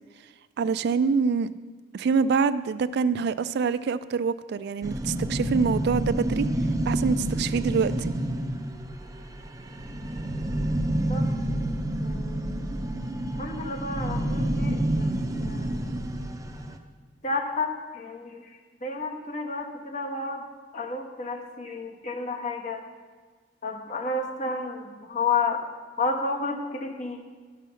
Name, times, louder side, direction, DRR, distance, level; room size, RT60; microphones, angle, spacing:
voice 1, 0.6-1.5 1.9-6.5 6.9-8.1, right 5 dB, 60° right, 15 dB, 0.3 m, -25 dB
sound 1, 4.8-16.8, right 1 dB, 20° right, 0.6 m, -29 dB
voice 2, 12.0-12.7 13.4-15.1 15.4-15.8 17.2-20.4 20.7-22.8 23.6-25.6 26.0-27.2, left 3 dB, 40° left, 2 dB, 1.2 m, -31 dB
12.5 x 6.2 x 5.7 m, 1.5 s
head